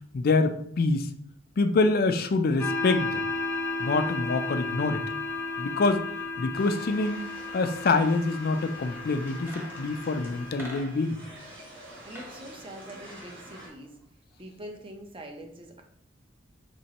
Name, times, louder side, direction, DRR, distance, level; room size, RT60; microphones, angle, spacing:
voice 1, 0.1-1.1 1.6-3.3 3.8-5.0 5.6-7.2 7.5-11.2, left 3 dB, 50° left, 8 dB, 0.4 m, -26 dB
sound 1, 2.6-10.8, left 3 dB, 15° left, 0.6 m, -34 dB
sound 2, 6.5-13.7, right 1 dB, 70° right, 1.8 m, -46 dB
sound 3, 9.3-11.3 11.9-12.4 12.7-14.0 14.3-14.4, equal, 10° right, 1.0 m, -46 dB
voice 2, 12.0-14.0 14.4-15.8, right 1 dB, 30° right, 3 dB, 0.7 m, -44 dB
5.2 x 3.1 x 2.9 m, 0.68 s
head